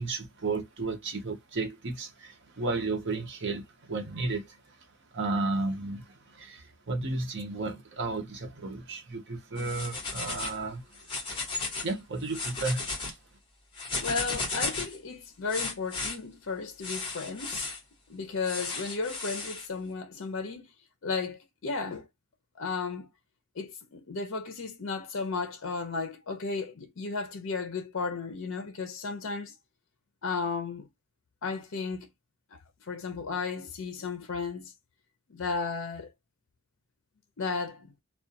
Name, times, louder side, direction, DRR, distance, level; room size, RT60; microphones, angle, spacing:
voice 1, 0.0-4.8 5.1-11.0 11.8-13.2, right 3 dB, 55° right, 0.7 m, -33 dB
sound 1, 9.6-10.6 11.0-11.9 12.2-13.1 13.7-15.0 15.5-16.2 16.8-17.8 18.4-19.7, left 3 dB, 25° left, 1.0 m, -34 dB
voice 2, 14.0-17.7 18.1-20.7 21.0-22.0 22.6-23.1 23.6-29.5 30.2-30.9 31.4-32.1 32.9-34.7 35.3-36.1 37.4-37.9, left 4 dB, 60° left, 0.5 m, -34 dB
2.3 x 2.2 x 2.6 m
head